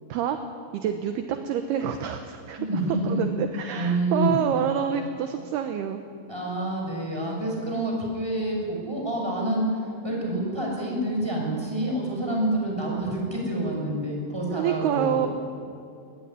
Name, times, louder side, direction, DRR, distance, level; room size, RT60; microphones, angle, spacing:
voice 1, 0.7-2.6 3.1-6.0 14.5-15.3, right 9 dB, 75° right, 7 dB, 2.6 m, -27 dB
voice 2, 2.6-3.2 3.8-4.3 6.3-15.3, right 1 dB, 5° right, -1 dB, 6.3 m, -27 dB
22.5 x 20.0 x 9.9 m, 2.5 s
omnidirectional pair, 5.6 m